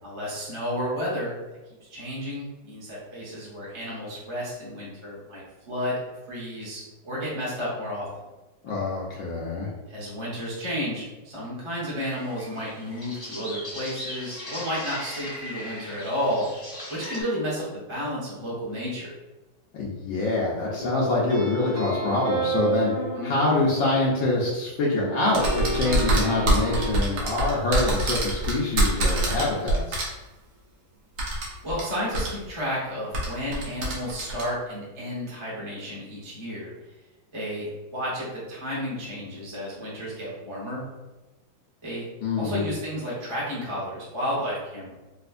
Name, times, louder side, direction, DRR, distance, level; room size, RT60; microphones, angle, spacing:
voice 1, 0.0-1.3 1.9-6.0 6.3-8.1 9.9-16.4 16.9-19.1 23.1-23.3 31.6-36.7 37.3-40.8 41.8-42.0 42.4-44.9, equal, 20° right, -6 dB, 0.8 m, -32 dB
voice 2, 8.6-9.7 19.7-22.9 23.2-30.0 42.2-42.7, left 2 dB, 75° left, -5 dB, 1.3 m, -25 dB
sound 1, 12.0-17.2, left 1 dB, 15° left, 0.7 m, -39 dB
sound 2, 20.8-24.5 24.9-26.9, right 3 dB, 60° right, 1.2 m, -30 dB
sound 3, 25.3-30.0 31.2-31.8 32.1-32.3 33.1-34.4, right 1 dB, 80° right, 1.6 m, -24 dB
4.2 x 2.4 x 2.5 m, 1.1 s
omnidirectional pair, 2.2 m